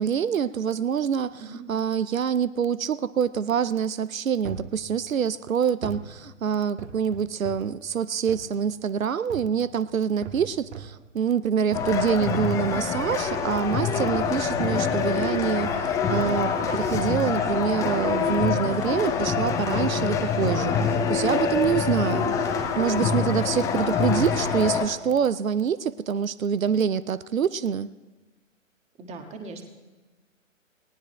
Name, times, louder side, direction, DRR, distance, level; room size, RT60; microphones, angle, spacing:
voice 1, 0.0-22.5 22.7-27.9, right 7 dB, 85° right, 18 dB, 0.6 m, -26 dB
sound 1, 4.4-4.8 5.8-6.1 6.8-7.7 8.3-8.5 9.3-9.6 10.2-11.0 11.7-12.0 12.3-15.9 16.2-16.4 16.7-17.1 17.9-18.1 18.9-19.2 19.8-19.9, right 6 dB, 55° right, 1.6 m, -40 dB
sound 2, 11.7-24.8, left 6 dB, 10° left, 0.6 m, -25 dB
voice 2, 29.0-29.7, right 3 dB, 15° right, 4 dB, 1.7 m, -39 dB
29.0 x 18.5 x 2.2 m, 1.2 s
figure-of-eight pair, 125°, 39 cm